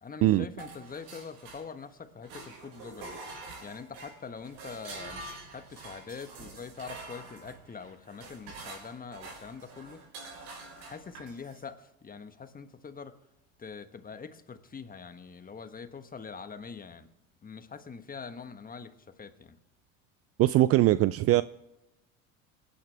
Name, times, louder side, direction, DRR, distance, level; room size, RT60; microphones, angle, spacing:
voice 1, 0.0-3.2 3.6-5.2 5.5-10.0 10.7-13.2 13.6-17.1 17.4-19.6, left 5 dB, 20° left, 9 dB, 1.4 m, -44 dB
sound 1, 0.6-1.9 2.2-11.7, right 3 dB, 65° right, 6.9 m, -46 dB
voice 2, 20.4-21.4, right 15 dB, 40° right, 17 dB, 0.4 m, -21 dB
26.5 x 9.8 x 3.5 m, 0.91 s
hypercardioid pair, 80°, 41 cm